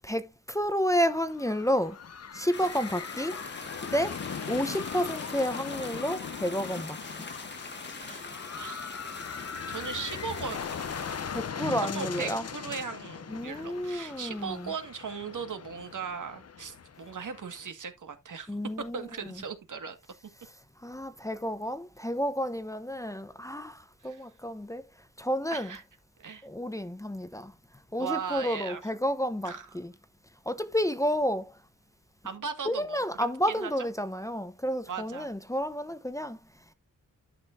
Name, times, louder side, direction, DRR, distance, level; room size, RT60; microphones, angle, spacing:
voice 1, 0.0-2.0 2.3-3.4 3.9-4.2 4.5-7.3 11.3-12.5 13.3-14.7 18.5-19.4 20.8-24.9 25.2-25.8 26.4-27.5 27.9-29.9 30.5-31.6 32.7-36.4, equal, 10° left, 0.9 m, -31 dB
sound 1, 1.1-17.7, left 7 dB, 50° left, 0.8 m, -40 dB
sound 2, 2.5-11.5, left 3 dB, 35° left, 1.5 m, -42 dB
voice 2, 8.0-9.1 9.7-10.7 11.9-18.6 18.9-20.0 24.0-24.2 25.5-25.8 26.2-26.5 28.0-28.8 29.4-29.7 32.2-33.7 34.9-35.3, right 6 dB, 70° right, 1.9 m, -38 dB
11.5 x 6.7 x 2.7 m
wide cardioid pair, 100°, 32 cm